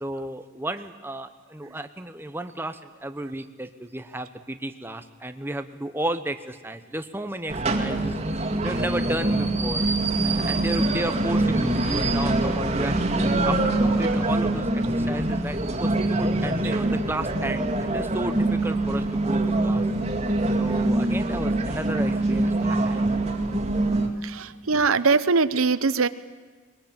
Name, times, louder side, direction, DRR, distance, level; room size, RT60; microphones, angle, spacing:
voice 1, 0.0-8.2 8.6-9.9 10.2-19.8 20.6-23.1, right 1 dB, 10° right, 8 dB, 0.9 m, -33 dB
sound 1, 7.5-24.1, right 2 dB, 30° right, 2.1 m, -24 dB
voice 2, 24.2-26.1, right 4 dB, 85° right, 14 dB, 0.8 m, -22 dB
22.0 x 21.0 x 8.9 m, 1.4 s
head